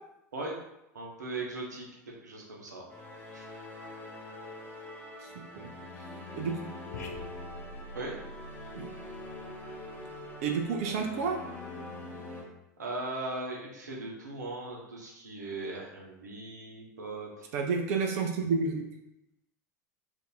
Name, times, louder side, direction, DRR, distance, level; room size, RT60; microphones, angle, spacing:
voice 1, 0.9-2.8 3.3-3.5 7.9-8.1 12.8-17.5, right 2 dB, 75° right, -2 dB, 0.8 m, -39 dB
sound 1, 2.9-12.4, left 2 dB, 20° left, 0.8 m, -44 dB
sound 2, 6.9-11.6, equal, 65° left, 0.4 m, -47 dB
voice 2, 10.4-11.4 17.5-18.9, right 5 dB, 55° right, 3 dB, 0.4 m, -30 dB
2.6 x 2.6 x 3.8 m, 0.88 s
figure-of-eight pair, 80°, 9 cm